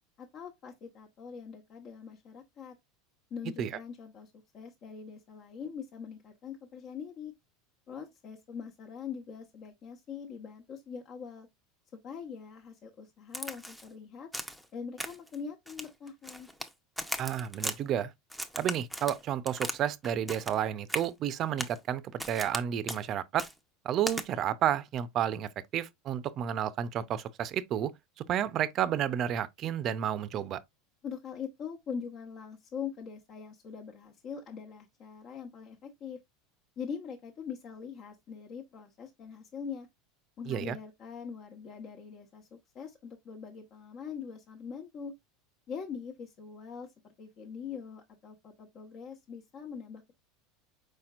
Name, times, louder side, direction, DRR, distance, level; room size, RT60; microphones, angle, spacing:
voice 1, 0.2-2.7 3.3-7.3 7.9-11.5 12.0-14.3 14.7-16.5 31.0-36.2 36.8-39.9 40.4-45.1 45.7-50.1, left 6 dB, 45° left, 1.0 m, -42 dB
Crack, 13.3-13.9 14.3-14.7 15.0-15.4 15.7-16.7 17.0-17.8 18.3-19.8 20.0-20.6 20.9-21.1 21.6-21.8 22.2-22.6 22.9-23.0 23.4-23.5 24.1-24.3, equal, ahead, 0.7 m, -37 dB
voice 2, 17.2-18.1 18.6-23.5 23.8-27.9 28.3-30.6 40.5-40.8, right 10 dB, 45° right, 0.6 m, -31 dB
4.7 x 4.4 x 2.4 m
supercardioid pair, 120°, 0 cm